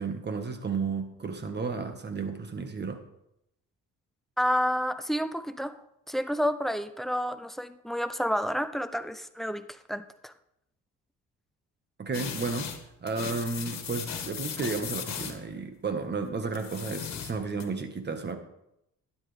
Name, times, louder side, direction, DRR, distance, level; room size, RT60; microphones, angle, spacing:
voice 1, 0.0-3.0 12.0-12.7 13.0-18.4, right 4 dB, 35° right, 7 dB, 1.6 m, -33 dB
voice 2, 4.4-5.8 6.1-10.3, equal, ahead, 12 dB, 0.6 m, -30 dB
sound 1, 12.1-12.8 13.1-15.4 16.5-17.6, left 7 dB, 60° left, 1.7 m, -37 dB
12.0 x 10.0 x 3.5 m, 0.82 s
cardioid pair, 90°, 30 cm